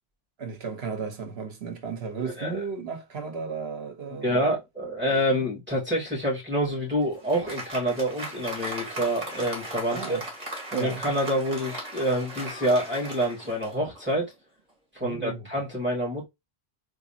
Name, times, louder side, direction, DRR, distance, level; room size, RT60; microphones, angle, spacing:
voice 1, 0.4-4.5 5.1-5.2 9.9-10.2 10.7-11.0 15.0-15.5, right 5 dB, 75° right, 1.2 m, -34 dB
voice 2, 4.2-10.2 10.7-14.3 14.9-16.3, equal, 10° right, 2.4 m, -27 dB
Applause, 6.7-14.2, right 1 dB, 40° right, 1.8 m, -38 dB
4.0 x 3.3 x 2.7 m
omnidirectional pair, 1.1 m